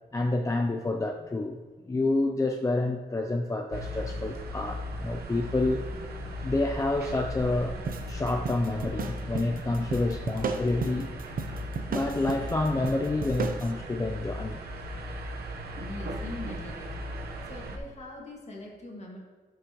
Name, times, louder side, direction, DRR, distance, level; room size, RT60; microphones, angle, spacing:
voice 1, 0.1-5.8 6.4-7.8 8.1-11.1 11.9-14.6, left 2 dB, 20° left, 4 dB, 0.4 m, -28 dB
sound 1, 3.7-17.8, equal, 80° right, 1.1 m, -37 dB
sound 2, 7.9-13.7, right 5 dB, 60° right, 0.7 m, -35 dB
voice 2, 15.8-16.9 17.4-19.2, left 2 dB, 45° left, -1 dB, 1.9 m, -42 dB
12.5 x 6.9 x 3.0 m, 1.3 s
wide cardioid pair, 140°, 16 cm